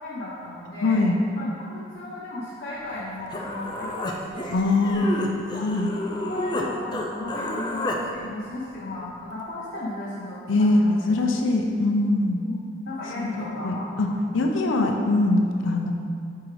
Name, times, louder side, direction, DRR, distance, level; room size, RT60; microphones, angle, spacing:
voice 1, 0.0-1.0 1.3-5.1 5.5-5.6 6.1-11.1 12.4-14.2 14.8-14.9, left 2 dB, 50° left, -8 dB, 0.8 m, -35 dB
voice 2, 0.8-1.2 4.5-5.3 5.6-5.9 10.5-12.4 13.2-14.1 14.3-15.9, left 2 dB, 85° left, 3 dB, 0.6 m, -22 dB
Human voice, 3.0-3.1 3.3-6.7 6.9-8.0, left 1 dB, 20° left, 0.4 m, -30 dB
6.1 x 4.7 x 3.3 m, 2.4 s
head